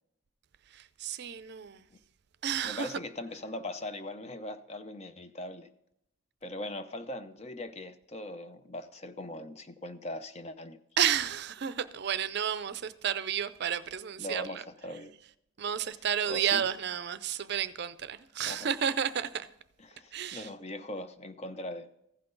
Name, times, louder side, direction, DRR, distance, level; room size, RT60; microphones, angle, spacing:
voice 1, 0.7-1.8 2.4-3.0 11.0-14.6 15.6-19.5 20.1-20.5, right 8 dB, 55° right, 0.5 m, -31 dB
voice 2, 2.6-5.7 6.4-10.8 14.2-15.1 16.3-16.6 18.4-18.7 19.8-21.9, left 1 dB, 30° left, 0.6 m, -40 dB
15.0 x 5.9 x 3.8 m
head